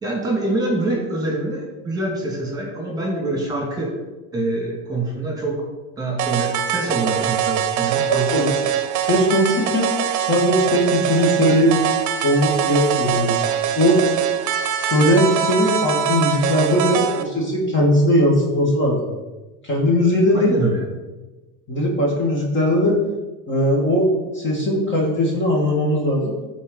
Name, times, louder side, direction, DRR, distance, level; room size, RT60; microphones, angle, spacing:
voice 1, 0.0-3.9 4.3-5.6 6.0-8.4 20.3-20.8, right 2 dB, 10° right, -2 dB, 2.4 m, -25 dB
sound 1, 6.2-17.2, right 10 dB, 45° right, 0.9 m, -23 dB
voice 2, 8.1-8.6 9.0-9.9 10.2-11.7 12.2-13.4 13.8-14.0 14.8-19.1 19.6-20.5 21.7-22.9 23.5-24.1 24.3-26.3, left 1 dB, 30° left, -2 dB, 2.2 m, -19 dB
13.0 x 4.6 x 4.1 m, 1.2 s
supercardioid pair, 125°, 40 cm